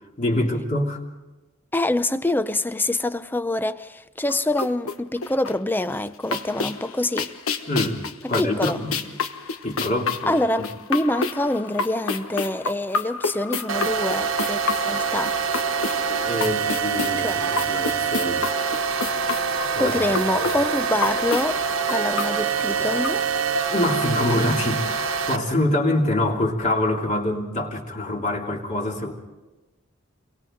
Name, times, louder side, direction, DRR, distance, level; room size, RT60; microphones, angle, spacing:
voice 1, 0.2-1.0 7.7-9.0 9.6-10.7 16.2-18.4 19.7-20.0 20.3-20.5 23.7-29.1, left 1 dB, 35° left, 3.1 m, -25 dB
voice 2, 1.7-7.3 8.2-8.8 10.3-15.4 17.2-17.4 19.8-21.6 21.9-23.3, left 1 dB, 10° left, 0.6 m, -25 dB
sound 1, 4.3-5.8 6.1-23.7, left 4 dB, 85° left, 1.3 m, -30 dB
sound 2, 13.7-25.4, right 6 dB, 75° right, 1.4 m, -25 dB
29.5 x 23.5 x 3.9 m
head